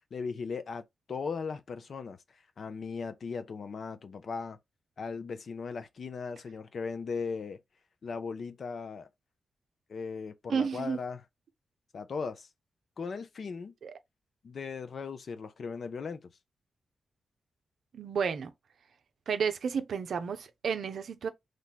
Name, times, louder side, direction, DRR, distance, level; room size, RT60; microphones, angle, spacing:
voice 1, 0.1-0.8 1.1-2.2 2.6-4.6 5.0-7.6 8.0-9.1 9.9-11.2 11.9-12.5 13.0-13.7 14.4-16.3, left 5 dB, 65° left, 0.5 m, -37 dB
voice 2, 10.5-11.0 13.8-13.9 17.9-18.5 19.3-21.3, right 6 dB, 75° right, 0.5 m, -31 dB
3.2 x 2.2 x 3.9 m
supercardioid pair, 45°, 0 cm